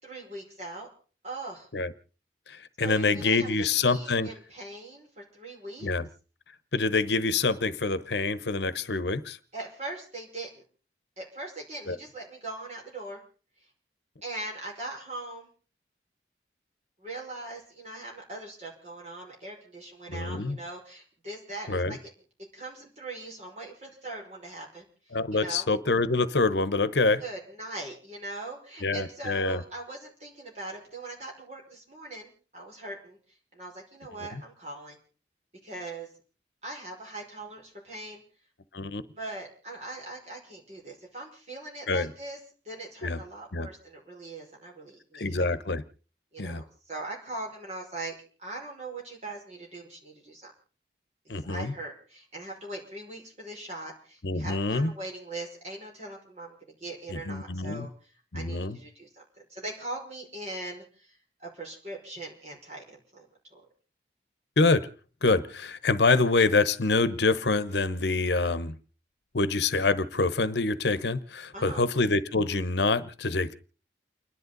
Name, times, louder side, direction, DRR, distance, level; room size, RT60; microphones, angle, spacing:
voice 1, 0.0-0.9 1.2-1.7 2.8-3.5 3.8-5.9 9.5-10.6 11.2-13.2 14.2-15.5 17.0-22.1 22.5-25.7 27.2-33.2 33.5-35.0 35.6-36.1 36.6-38.2 39.2-42.4 42.6-45.5 46.3-50.5 51.4-63.3 63.5-63.6 71.5-71.8, right 2 dB, 35° right, -1 dB, 5.3 m, -41 dB
voice 2, 2.5-4.3 5.8-6.1 6.7-9.4 11.9-12.0 20.1-20.6 21.7-22.0 25.1-27.2 28.8-29.6 34.3-34.4 38.7-39.0 41.9-42.1 43.0-43.2 43.5-43.7 45.1-45.8 46.4-46.6 51.3-51.7 54.2-54.9 57.1-57.9 58.3-58.8 64.6-64.9 65.2-68.7 69.3-73.5, left 3 dB, 75° left, 15 dB, 0.9 m, -26 dB
30.0 x 11.0 x 4.0 m, 0.39 s
head